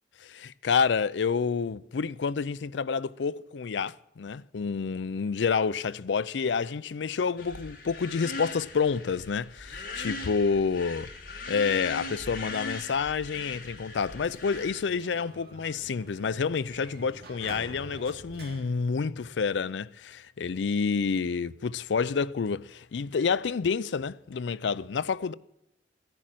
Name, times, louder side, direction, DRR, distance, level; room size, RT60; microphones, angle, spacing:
voice 1, 0.2-11.1 11.5-25.3, left 5 dB, 85° left, 0.4 m, -29 dB
sound 1, 7.4-14.8, left 3 dB, 50° left, 2.3 m, -39 dB
Sliding door, 14.1-19.7, right 2 dB, 55° right, 2.2 m, -48 dB
15.0 x 10.5 x 7.5 m
head